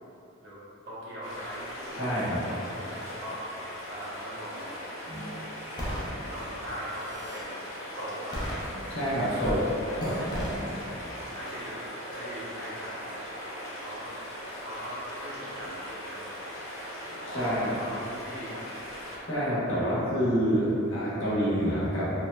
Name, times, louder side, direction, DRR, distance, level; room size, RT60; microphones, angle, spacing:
voice 1, 0.4-3.4 3.9-4.8 5.1-5.2 5.7-7.6 7.9-8.5 9.4-10.3 11.3-11.8 12.1-13.4 13.8-14.1 14.6-16.4 17.3-19.0 19.8-20.0, equal, 60° right, -9 dB, 0.7 m, -41 dB
sound 1, 1.2-19.4, equal, 90° left, 0.6 m, -40 dB
voice 2, 2.0-2.4 5.1-5.3 8.9-9.6 10.0-10.7 17.2-17.7 19.3-22.1, equal, 65° left, -9 dB, 0.8 m, -28 dB
sound 2, 5.8-6.1 6.8-7.4 8.3-9.1 9.4-9.6 10.0-10.6, equal, 20° left, 0.4 m, -34 dB
3.0 x 2.0 x 2.2 m, 2.8 s
head